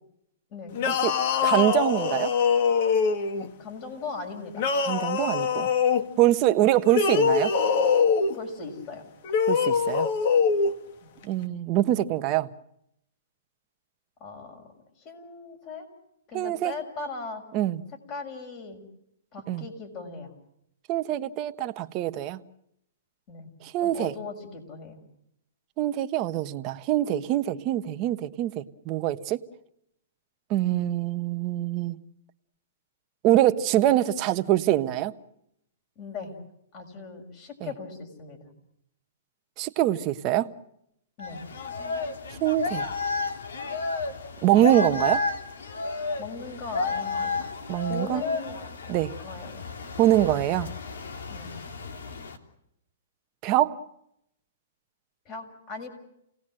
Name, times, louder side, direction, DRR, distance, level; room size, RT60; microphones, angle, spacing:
sound 1, 0.7-3.5 4.5-6.1 6.8-8.4 9.2-10.7, left 6 dB, 50° left, 2.0 m, -23 dB
voice 1, 0.8-2.3 4.9-5.7 6.2-7.5 9.5-10.1 11.2-12.5 16.3-16.7 17.5-17.8 19.5-19.6 20.9-22.4 23.6-24.1 25.8-29.4 30.5-32.0 33.2-35.1 37.6-37.7 39.6-40.5 42.4-42.8 44.4-45.2 47.7-48.2 48.9-49.1 50.0-50.7 53.4-53.8, right 13 dB, 30° right, 1.2 m, -24 dB
voice 2, 3.6-4.7 8.3-9.0 11.0-11.1 14.2-14.7 15.0-15.9 16.3-17.4 18.1-18.8 19.3-20.3 23.3-23.5 23.8-25.0 36.0-36.3 36.7-38.4 41.2-41.4 46.2-47.5 47.8-49.7 51.3-51.6 55.2-55.9, left 4 dB, 35° left, 6.4 m, -39 dB
sound 2, 41.2-52.4, left 4 dB, 80° left, 3.1 m, -32 dB
29.5 x 19.0 x 7.7 m
hypercardioid pair, 150°, 0 cm